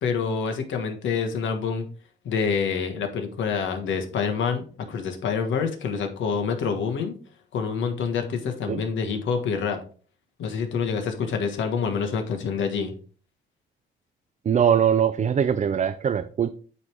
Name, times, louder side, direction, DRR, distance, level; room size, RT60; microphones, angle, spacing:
voice 1, 0.0-1.8 2.2-7.1 7.5-9.8 10.4-12.9, left 6 dB, 75° left, 4 dB, 1.4 m, -27 dB
voice 2, 14.5-16.5, right 8 dB, 35° right, 9 dB, 0.5 m, -22 dB
8.3 x 3.4 x 4.6 m, 0.42 s
cardioid pair, 90°, 20 cm